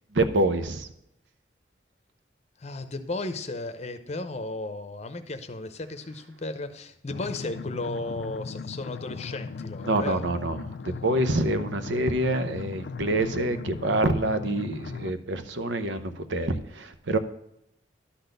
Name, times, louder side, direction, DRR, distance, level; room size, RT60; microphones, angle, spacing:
voice 1, 0.1-0.9 9.8-17.2, right 2 dB, 85° right, 9 dB, 0.8 m, -26 dB
voice 2, 2.6-10.3, left 2 dB, 35° left, 9 dB, 0.7 m, -34 dB
sound 1, 7.1-15.1, left 4 dB, 60° left, 0.3 m, -38 dB
11.5 x 4.1 x 6.7 m, 0.78 s
head